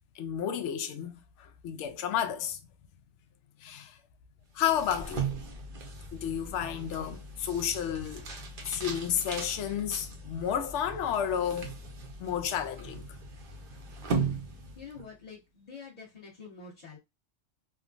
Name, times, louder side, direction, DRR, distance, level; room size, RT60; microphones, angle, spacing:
voice 1, 0.2-1.1 1.4-2.6 3.6-4.0 4.5-5.3 6.1-8.3 8.6-11.7 12.2-13.0, left 9 dB, 70° left, 0.8 m, -31 dB
sound 1, 4.6-15.1, right 4 dB, 50° right, 0.8 m, -38 dB
voice 2, 14.7-17.0, left 5 dB, 30° left, 1.2 m, -47 dB
3.4 x 2.2 x 2.4 m
omnidirectional pair, 1.3 m